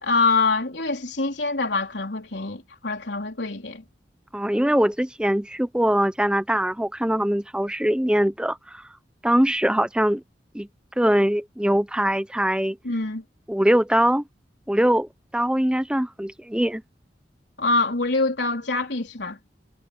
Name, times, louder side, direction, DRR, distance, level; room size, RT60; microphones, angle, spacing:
voice 1, 0.0-3.8 12.8-13.2 17.6-19.4, left 3 dB, 80° left, 3.8 m, -25 dB
voice 2, 4.3-8.8 9.2-10.2 10.5-10.7 11.0-12.8 13.5-14.2 14.7-16.8, right 1 dB, 5° right, 0.7 m, -22 dB
head